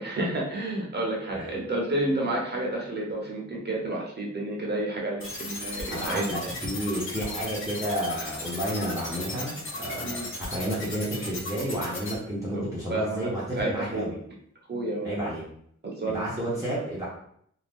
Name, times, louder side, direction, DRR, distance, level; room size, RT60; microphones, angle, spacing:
voice 1, 0.0-6.5 10.0-10.3 12.5-12.6 12.9-13.3 13.6-14.1 14.7-15.3 15.8-16.3, right 1 dB, 35° right, -2 dB, 0.9 m, -30 dB
sound 1, 5.2-12.1, left 2 dB, 45° left, 0.8 m, -36 dB
voice 2, 5.9-14.2 15.0-15.4 16.1-17.1, equal, 10° right, -9 dB, 0.9 m, -31 dB
2.6 x 2.3 x 3.4 m, 0.67 s
wide cardioid pair, 105°, 29 cm